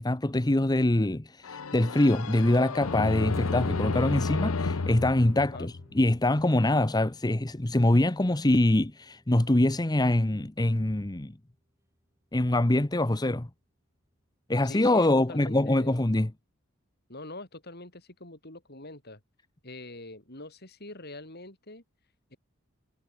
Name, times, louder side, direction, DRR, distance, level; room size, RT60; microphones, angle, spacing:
voice 1, 0.0-11.3 12.3-13.5 14.5-16.3, left 1 dB, 20° left, 0.9 m, -24 dB
sound 1, 1.4-6.2, left 3 dB, 80° left, 0.8 m, -31 dB
Strum, 3.3-9.6, equal, 15° right, 5.9 m, -48 dB
voice 2, 5.4-5.7 14.6-16.1 17.1-19.2 19.6-21.8 22.3-22.4, left 2 dB, 50° left, 7.4 m, -44 dB
head